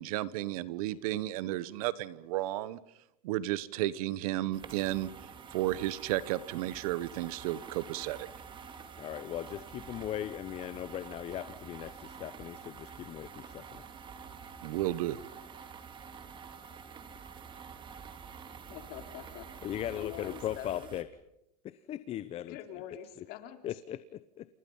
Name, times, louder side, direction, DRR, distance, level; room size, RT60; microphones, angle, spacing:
voice 1, 0.0-2.8 3.2-5.1 5.5-8.3 14.6-15.2, right 15 dB, 60° right, 17 dB, 1.4 m, -33 dB
sound 1, 4.5-21.0, right 6 dB, 25° right, 2.7 m, -48 dB
voice 2, 9.0-13.8 19.6-21.1 21.6-22.6 23.6-24.5, left 12 dB, 30° left, 15 dB, 0.9 m, -38 dB
voice 3, 18.7-19.5 19.9-20.9 22.5-23.8, left 11 dB, 45° left, 7 dB, 4.0 m, -45 dB
29.0 x 29.0 x 5.7 m, 0.83 s
supercardioid pair, 135°, 21 cm